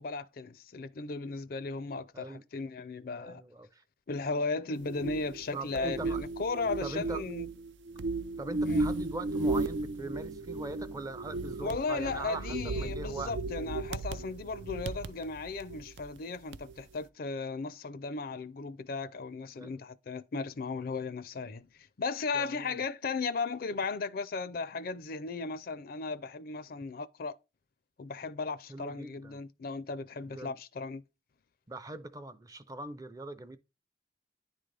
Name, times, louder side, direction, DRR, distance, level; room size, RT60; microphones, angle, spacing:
voice 1, 0.0-3.4 4.1-7.5 8.7-8.8 11.6-27.3 28.0-31.0, left 4 dB, 55° left, 0.4 m, -36 dB
voice 2, 3.2-3.8 5.5-6.2 6.8-7.2 8.4-13.3 19.6-19.7 22.3-22.8 28.7-29.4 30.3-30.6 31.7-33.6, right 2 dB, 20° right, 0.4 m, -41 dB
sound 1, 4.8-16.2 16.5-16.8, right 2 dB, 85° right, 0.5 m, -35 dB
9.9 x 3.8 x 3.3 m
head